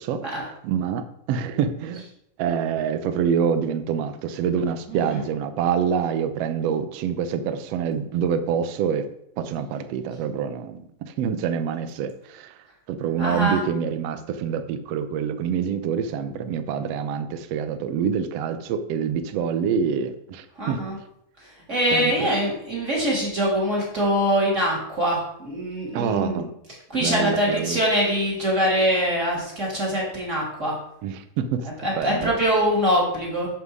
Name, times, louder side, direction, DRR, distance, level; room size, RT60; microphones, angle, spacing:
voice 1, 0.0-2.1 2.4-9.1 9.4-12.5 12.9-20.9 21.9-22.3 25.9-26.5 27.0-27.8 31.0-31.7 32.0-32.3, right 7 dB, 75° right, 10 dB, 1.5 m, -26 dB
voice 2, 4.9-5.2 13.2-13.6 20.6-21.0 21.4-26.5 26.9-30.7 31.8-33.5, equal, 20° right, -3 dB, 3.3 m, -23 dB
11.0 x 7.2 x 4.9 m, 0.74 s
omnidirectional pair, 3.9 m